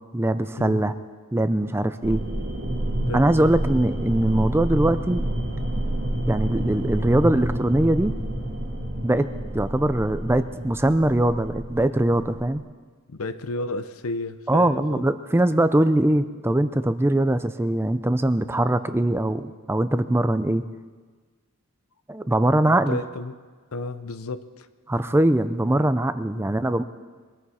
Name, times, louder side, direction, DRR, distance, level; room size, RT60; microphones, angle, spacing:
voice 1, 0.1-0.9 1.3-2.2 3.1-5.2 6.3-8.1 9.0-9.3 9.5-12.6 14.5-20.6 22.1-23.0 24.9-26.8, right 1 dB, 10° right, 11 dB, 0.4 m, -22 dB
sound 1, 2.0-12.6, right 1 dB, 50° right, 2.4 m, -29 dB
voice 2, 13.1-15.0 22.7-23.4 23.7-24.7 26.3-26.5, left 2 dB, 75° left, 13 dB, 0.7 m, -32 dB
22.5 x 14.0 x 4.3 m, 1.4 s
head